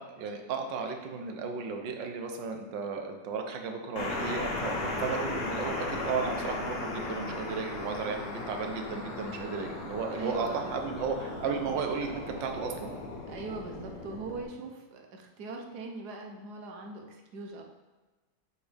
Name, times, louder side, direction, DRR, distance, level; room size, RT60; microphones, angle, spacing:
voice 1, 0.0-12.9, right 5 dB, 80° right, 4 dB, 1.5 m, -34 dB
sound 1, 4.0-14.4, left 2 dB, 60° left, 1.7 m, -37 dB
voice 2, 10.2-10.7 13.3-17.6, right 3 dB, 65° right, 2 dB, 1.4 m, -41 dB
8.6 x 5.1 x 3.4 m, 1.2 s
omnidirectional pair, 1.9 m